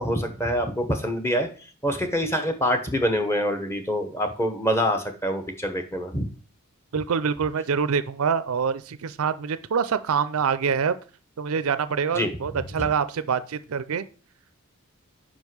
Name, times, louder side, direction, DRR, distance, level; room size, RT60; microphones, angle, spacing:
voice 1, 0.0-1.5 1.8-6.3 12.1-12.7, equal, 10° left, 6 dB, 1.0 m, -25 dB
voice 2, 6.9-11.0 11.4-14.0, right 6 dB, 70° right, 14 dB, 0.5 m, -25 dB
5.4 x 5.2 x 6.1 m, 0.38 s
head